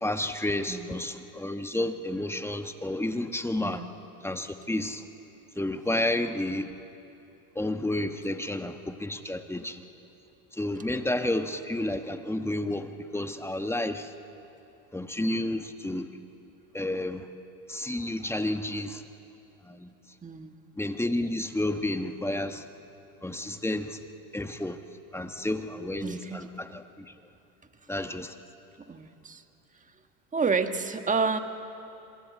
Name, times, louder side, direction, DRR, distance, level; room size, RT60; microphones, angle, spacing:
voice 1, 0.0-3.8 4.2-5.0 5.5-6.7 7.5-9.8 10.5-14.1 14.9-16.1 16.7-17.3 17.7-19.0 19.6-19.9 20.8-22.6 23.2-24.0 24.3-24.8 25.1-27.1 27.9-28.4, left 1 dB, 5° left, 7 dB, 1.3 m, -31 dB
voice 2, 20.2-20.5 26.0-26.5 28.9-29.4 30.3-31.4, right 4 dB, 20° right, 7 dB, 1.6 m, -29 dB
26.5 x 24.5 x 8.5 m, 2.8 s
supercardioid pair, 105°, 42 cm